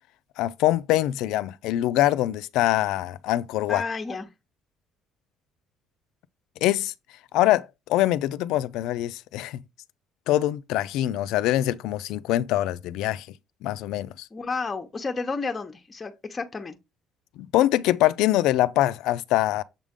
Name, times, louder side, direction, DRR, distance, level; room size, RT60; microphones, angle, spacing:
voice 1, 0.4-3.8 6.6-6.9 7.3-9.6 10.3-13.3 13.6-14.3 17.4-19.6, left 14 dB, 85° left, 0.4 m, -24 dB
voice 2, 3.7-4.3 14.3-16.8, left 4 dB, 25° left, 0.8 m, -31 dB
7.2 x 3.6 x 3.6 m
cardioid pair, 125°, 0 cm